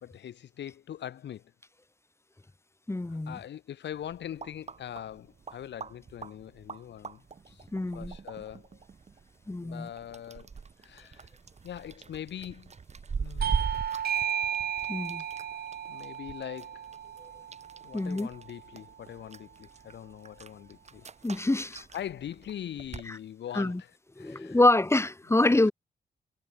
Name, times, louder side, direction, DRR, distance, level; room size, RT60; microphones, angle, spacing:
voice 1, 0.0-1.5 3.1-7.6 7.9-8.8 9.6-10.5 10.8-11.3 11.6-12.7 13.1-13.5 15.9-16.9 17.8-21.1 21.9-23.9 24.2-24.6 25.5-25.7, left 10 dB, 75° left, 1.2 m, -42 dB
voice 2, 2.9-3.4 7.7-8.1 9.5-9.9 14.9-15.2 17.9-18.3 21.2-21.8 23.1-23.2 23.5-23.8 24.2-25.7, left 2 dB, 15° left, 1.1 m, -26 dB
sound 1, 3.9-23.1, right 5 dB, 40° right, 1.1 m, -41 dB
Bell / Doorbell, 13.4-18.5, right 9 dB, 60° right, 0.6 m, -34 dB
cardioid pair, 85°, 18 cm